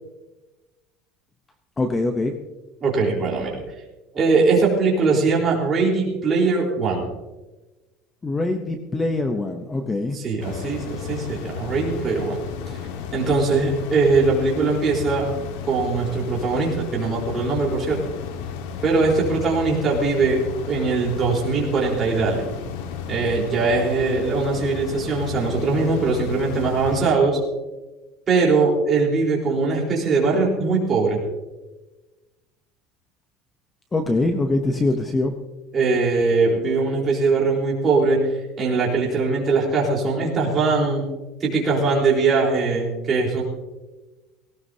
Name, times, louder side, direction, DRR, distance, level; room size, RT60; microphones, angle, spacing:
voice 1, 1.8-2.4 8.2-10.2 33.9-35.3, left 2 dB, 10° left, 6 dB, 0.7 m, -23 dB
voice 2, 2.8-3.6 4.1-7.1 10.1-12.4 13.1-15.3 15.7-18.0 18.8-20.4 20.6-22.4 23.1-27.4 28.3-31.2 35.7-38.3 38.6-41.1 41.4-43.4, right 4 dB, 20° right, -3 dB, 3.9 m, -21 dB
fan helsinki socispihakaikk, 10.4-27.1, left 7 dB, 85° left, 1.5 m, -33 dB
18.5 x 18.0 x 2.8 m, 1.1 s
cardioid pair, 175°, 0 cm